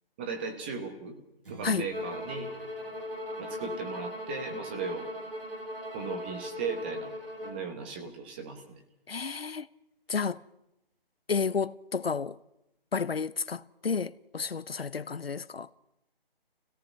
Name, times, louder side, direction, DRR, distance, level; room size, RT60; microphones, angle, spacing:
voice 1, 0.2-1.2 1.5-2.5 3.4-5.1 5.9-7.1 7.4-8.6, right 5 dB, 10° right, 1.1 m, -37 dB
sound 1, 1.4-4.1, right 2 dB, 65° right, 3.1 m, -51 dB
Bowed string instrument, 1.9-7.6, left 1 dB, 80° right, 6.5 m, -38 dB
voice 2, 9.1-9.7 10.1-10.4 11.3-12.4 12.9-15.7, left 5 dB, 80° left, 1.0 m, -31 dB
26.5 x 17.5 x 5.7 m
figure-of-eight pair, 165°, 29 cm